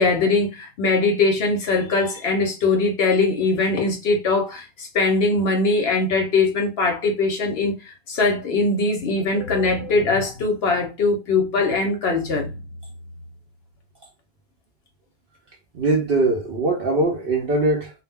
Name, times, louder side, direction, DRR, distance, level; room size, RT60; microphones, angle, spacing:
voice 1, 0.0-12.6, left 3 dB, 60° left, 0.8 m, -21 dB
voice 2, 15.7-17.9, right 2 dB, 60° right, 0.6 m, -21 dB
2.4 x 2.1 x 3.4 m
omnidirectional pair, 1.3 m